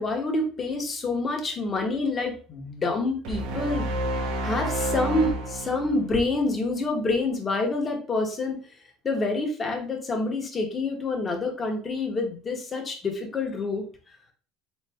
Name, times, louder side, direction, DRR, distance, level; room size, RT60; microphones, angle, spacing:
voice 1, 0.0-3.8 4.4-8.6 9.0-13.8, left 3 dB, 25° left, 2 dB, 1.1 m, -27 dB
sound 1, 3.2-6.6, right 1 dB, 80° right, 0.7 m, -30 dB
3.8 x 3.2 x 3.4 m, 0.39 s
cardioid pair, 115°, 0 cm